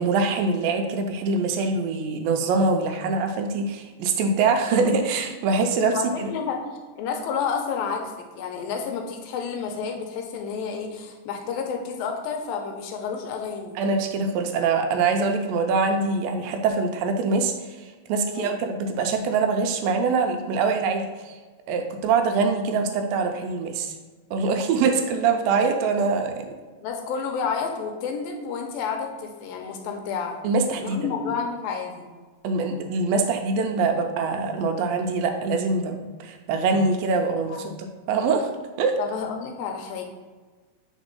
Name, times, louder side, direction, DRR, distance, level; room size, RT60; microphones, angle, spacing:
voice 1, 0.0-6.3 13.8-17.5 17.8-21.4 21.7-23.9 24.3-26.5 30.4-31.1 32.4-37.7 38.1-38.5 38.8-38.9, right 4 dB, 80° right, 5 dB, 2.3 m, -24 dB
voice 2, 5.9-6.6 7.0-13.8 18.3-18.6 26.8-30.4 30.8-32.1 37.5-37.7 39.0-40.0, left 6 dB, 80° left, 3 dB, 2.5 m, -30 dB
5.1 x 4.4 x 5.4 m, 1.3 s
omnidirectional pair, 4.2 m